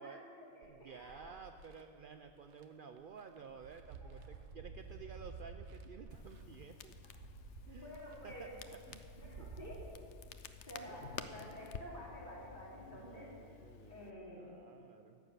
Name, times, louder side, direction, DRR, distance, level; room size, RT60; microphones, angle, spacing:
voice 1, 0.0-1.3 4.0-4.3 7.7-8.5 9.2-9.8 10.7-13.3 13.9-14.4, equal, 40° left, -6 dB, 3.7 m, -50 dB
voice 2, 0.6-7.0 7.7-8.0 8.2-9.1 9.4-9.5 10.9-11.3 12.9-15.2, right 6 dB, 60° right, 7 dB, 0.7 m, -53 dB
sound 1, 0.6-1.8 2.5-2.6 3.0-9.8, right 4 dB, 75° right, 1.2 m, -52 dB
Crackle, 6.1-14.1, left 8 dB, 80° left, 1.0 m, -52 dB
14.5 x 9.4 x 6.7 m, 2.4 s
omnidirectional pair, 1.2 m